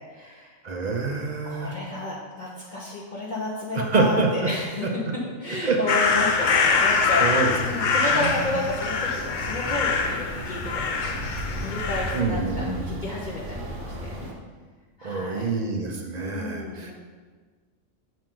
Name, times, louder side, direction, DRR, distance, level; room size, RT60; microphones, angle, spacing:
voice 1, 0.0-0.6 1.4-4.8 5.1-7.3 7.6-10.6 11.0-13.5 14.0-14.1 15.0-15.5 16.2-16.9, left 2 dB, 40° left, -6 dB, 0.9 m, -31 dB
voice 2, 0.6-1.8 3.7-4.5 5.6-5.8 6.1-6.2 7.2-8.5 12.1-12.9 15.0-16.9, right 3 dB, 45° right, 2 dB, 0.6 m, -26 dB
sound 1, 5.9-12.2, left 5 dB, 55° left, 0.5 m, -24 dB
sound 2, 6.0-14.3, right 1 dB, 65° right, 1.2 m, -36 dB
7.1 x 5.0 x 3.7 m, 1.4 s
omnidirectional pair, 1.4 m